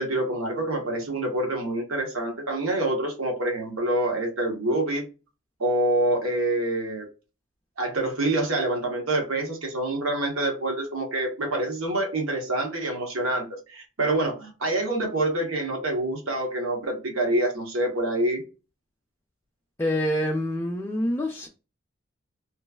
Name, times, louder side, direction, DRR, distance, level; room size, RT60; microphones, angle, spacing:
voice 1, 0.0-5.0 5.6-7.1 7.8-18.4, right 1 dB, 90° right, 1.0 m, -26 dB
voice 2, 19.8-21.5, left 1 dB, 15° left, 0.3 m, -26 dB
3.0 x 2.3 x 2.2 m
head